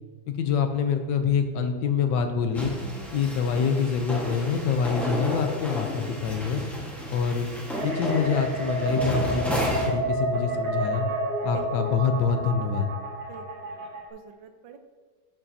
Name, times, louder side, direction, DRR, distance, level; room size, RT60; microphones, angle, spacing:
voice 1, 0.3-2.7 3.1-6.6 7.1-7.5 7.8-11.1 11.4-12.9, left 6 dB, 75° left, 7 dB, 1.3 m, -26 dB
sound 1, 2.5-9.9, equal, ahead, 1.0 m, -32 dB
sound 2, 7.7-14.1, right 2 dB, 50° right, 1.7 m, -30 dB
voice 2, 11.5-11.9 13.3-13.8 14.1-14.8, right 6 dB, 85° right, 7 dB, 1.5 m, -44 dB
12.0 x 5.7 x 2.7 m, 1.5 s
omnidirectional pair, 2.0 m